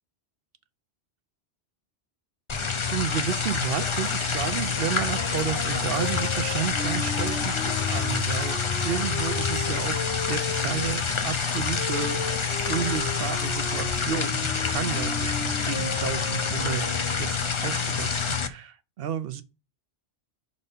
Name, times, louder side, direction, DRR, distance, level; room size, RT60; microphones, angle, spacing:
sound 1, 2.5-18.5, left 6 dB, 35° left, 0.5 m, -27 dB
voice 1, 2.8-12.4 12.7-16.9 17.2-19.4, right 9 dB, 65° right, 0.8 m, -32 dB
sound 2, 3.4-14.0, right 5 dB, 85° right, 1.4 m, -48 dB
Wind instrument woodwind instrument, 5.1-10.9 11.7-17.5, left 3 dB, 60° left, 1.5 m, -37 dB
5.4 x 4.1 x 5.3 m
omnidirectional pair, 1.2 m